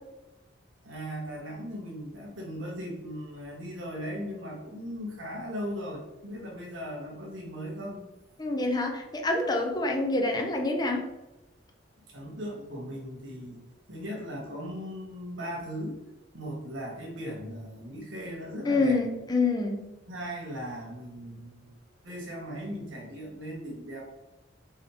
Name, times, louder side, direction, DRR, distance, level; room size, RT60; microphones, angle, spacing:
voice 1, 0.8-8.1 12.1-13.6 13.9-16.0 16.3-19.0 20.1-21.8 22.0-24.0, equal, 85° right, -2 dB, 1.9 m, -38 dB
voice 2, 8.4-11.0 18.6-19.8, left 2 dB, 20° left, 2 dB, 0.9 m, -26 dB
5.4 x 5.3 x 3.5 m, 0.96 s
head